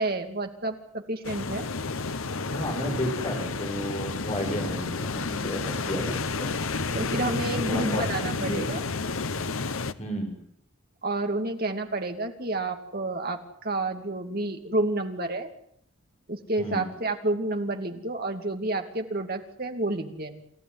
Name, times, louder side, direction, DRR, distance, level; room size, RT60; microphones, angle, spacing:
voice 1, 0.0-1.7 6.9-8.8 11.0-15.5 16.3-20.4, right 2 dB, 45° right, 5 dB, 2.7 m, -30 dB
sound 1, 1.2-9.9, left 4 dB, 75° left, 1.1 m, -31 dB
voice 2, 2.5-6.7 7.7-8.7 10.0-10.3 16.6-16.9, equal, 30° left, 2 dB, 7.0 m, -32 dB
28.5 x 14.0 x 9.6 m, 0.70 s
head